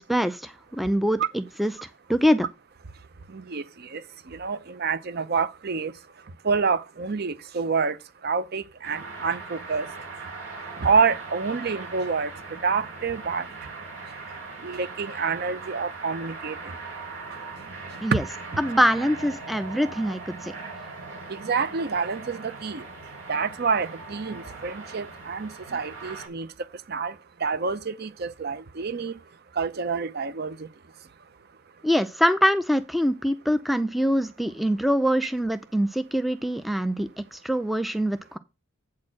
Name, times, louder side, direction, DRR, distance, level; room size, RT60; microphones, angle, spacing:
voice 1, 0.0-2.5 18.0-18.2 18.6-20.5 31.8-38.4, equal, ahead, 0.4 m, -24 dB
voice 2, 3.3-6.0 6.4-9.9 10.8-13.5 14.6-16.8 18.1-18.2 21.3-22.9 23.3-26.5 26.9-29.2 29.5-30.7, right 5 dB, 50° right, 0.6 m, -28 dB
sound 1, 8.8-26.3, right 3 dB, 75° right, 4.4 m, -40 dB
8.4 x 4.4 x 6.2 m
head